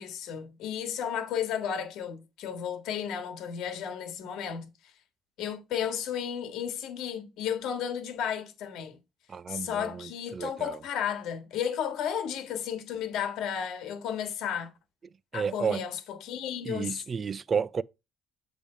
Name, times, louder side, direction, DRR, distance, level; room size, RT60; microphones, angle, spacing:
voice 1, 0.0-4.7 5.4-9.0 9.5-14.7 15.3-17.0, left 8 dB, 70° left, 1.6 m, -33 dB
voice 2, 9.3-10.8 15.3-15.8 16.7-17.8, right 6 dB, 30° right, 0.3 m, -32 dB
7.4 x 3.4 x 4.9 m
cardioid pair, 150°, 0 cm